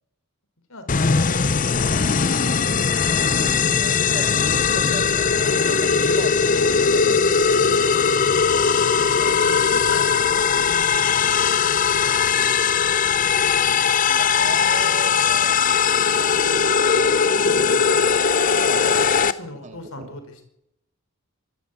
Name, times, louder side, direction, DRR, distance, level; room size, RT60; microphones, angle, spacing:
voice 1, 0.7-2.3 3.9-4.2 6.7-7.2 8.4-8.7 9.4-10.8 11.1-11.4 11.9-13.9 17.5-17.8 19.0-20.5, left 2 dB, 75° left, 7 dB, 4.9 m, -40 dB
sound 1, 0.9-19.3, left 6 dB, 40° left, 0.7 m, -19 dB
voice 2, 3.0-7.6 9.2-9.4 14.1-17.3 18.6-20.1, right 2 dB, 35° right, 6 dB, 2.9 m, -38 dB
24.0 x 13.5 x 8.5 m, 0.81 s
head